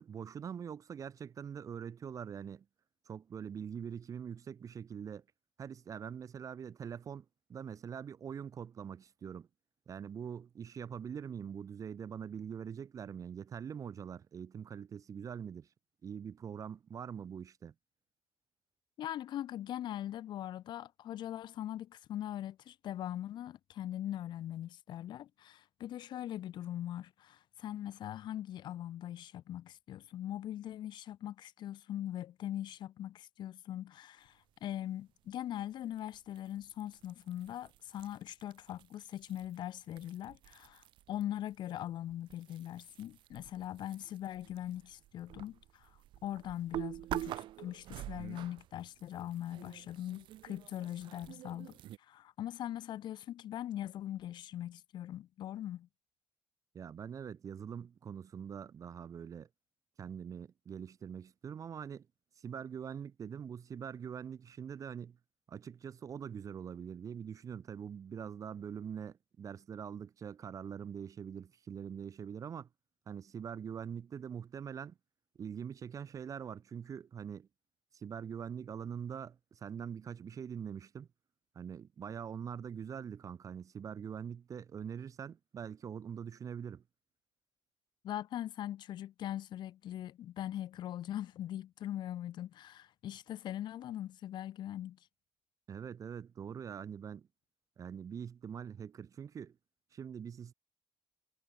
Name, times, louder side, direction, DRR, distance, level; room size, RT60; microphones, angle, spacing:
voice 1, 0.0-2.6 3.1-5.2 5.6-7.2 7.5-9.5 9.9-15.7 16.0-17.7 56.7-59.5 60.0-62.1 62.4-65.2 65.5-72.7 73.1-75.0 75.4-77.5 77.9-81.1 81.5-86.8 95.7-97.3 97.8-99.6 99.9-100.5, right 7 dB, 45° right, 2.9 m, -43 dB
voice 2, 19.0-45.9 46.2-51.8 52.1-55.9 88.0-95.0, left 12 dB, 70° left, 1.7 m, -41 dB
sound 1, 35.9-41.2 41.5-52.0, right 14 dB, 85° right, 4.0 m, -47 dB
cardioid pair, 140°, 8 cm